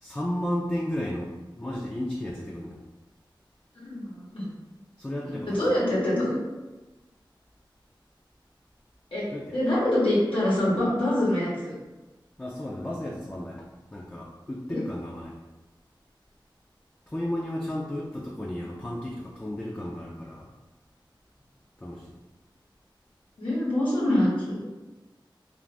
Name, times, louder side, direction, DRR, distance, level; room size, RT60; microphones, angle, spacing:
voice 1, 0.0-2.8 5.0-5.7 9.3-9.6 12.4-13.7 13.9-15.3 17.1-20.5 21.8-22.1, left 1 dB, 20° left, -4 dB, 0.4 m, -33 dB
voice 2, 3.8-4.5 5.2-6.3 9.1-9.2 9.5-11.7 14.7-14.8 23.4-24.6, left 1 dB, 85° left, -9 dB, 1.0 m, -25 dB
2.5 x 2.4 x 3.3 m, 1.1 s
wide cardioid pair, 40°, 9 cm